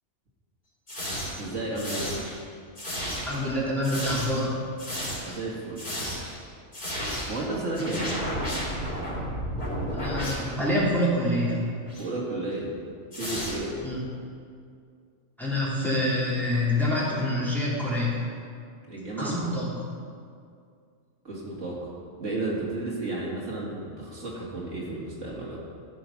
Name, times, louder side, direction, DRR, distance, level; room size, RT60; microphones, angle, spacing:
sound 1, 0.9-1.4 1.8-2.4 2.8-3.4 3.8-4.4 4.8-5.4 5.8-6.4 6.7-7.4 7.8-10.9 11.9-12.1 13.1-13.9, equal, 45° left, 3.7 m, -33 dB
voice 1, 1.4-2.1 5.2-6.1 7.3-8.1 12.0-12.7 13.2-13.7 18.9-19.3 21.2-21.9 22.2-25.6, right 2 dB, 85° right, -4 dB, 2.5 m, -32 dB
voice 2, 3.2-4.6 9.9-11.7 13.8-14.0 15.4-18.1 19.2-19.7, left 1 dB, ahead, -8 dB, 2.9 m, -26 dB
14.5 x 6.2 x 5.8 m, 2.3 s
omnidirectional pair, 1.2 m